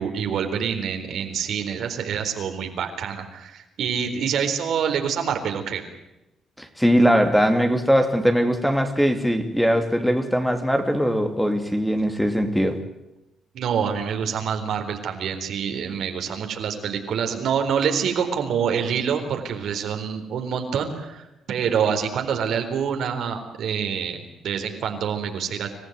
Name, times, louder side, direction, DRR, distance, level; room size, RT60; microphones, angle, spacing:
voice 1, 0.0-5.8 13.5-25.7, right 7 dB, 70° right, 5 dB, 4.1 m, -26 dB
voice 2, 6.6-12.8, equal, ahead, 6 dB, 3.0 m, -20 dB
27.0 x 15.0 x 9.4 m, 0.94 s
cardioid pair, 90°, 0 cm